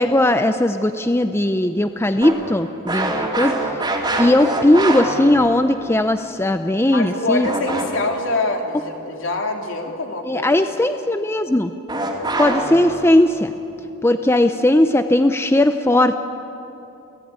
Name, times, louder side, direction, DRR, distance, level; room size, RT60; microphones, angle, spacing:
voice 1, 0.0-3.6 4.2-7.5 10.3-11.7 12.4-13.5 14.0-16.2, left 1 dB, 10° left, 8 dB, 0.6 m, -18 dB
sound 1, 2.2-5.9 7.4-8.2 11.9-13.0, right 2 dB, 20° right, 3.1 m, -24 dB
voice 2, 6.9-10.7, left 2 dB, 65° left, 2 dB, 3.2 m, -25 dB
29.0 x 17.0 x 9.6 m, 2.8 s
head